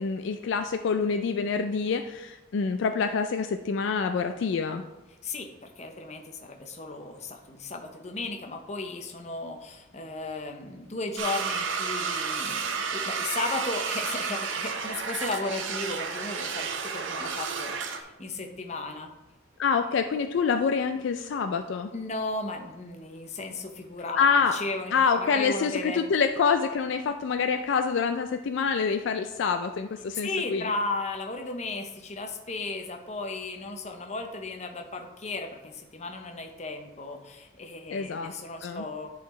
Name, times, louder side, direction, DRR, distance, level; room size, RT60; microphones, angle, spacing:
voice 1, 0.0-4.8 19.6-21.9 24.2-24.5 24.9-30.7 37.9-38.3 38.6-38.8, left 5 dB, 60° left, 7 dB, 0.3 m, -26 dB
voice 2, 5.2-19.1 21.9-24.3 24.5-26.0 30.1-39.1, left 3 dB, 35° left, 5 dB, 0.6 m, -35 dB
sound 1, 11.2-18.0, right 5 dB, 65° right, 0.6 m, -31 dB
11.0 x 4.0 x 3.1 m, 1.0 s
head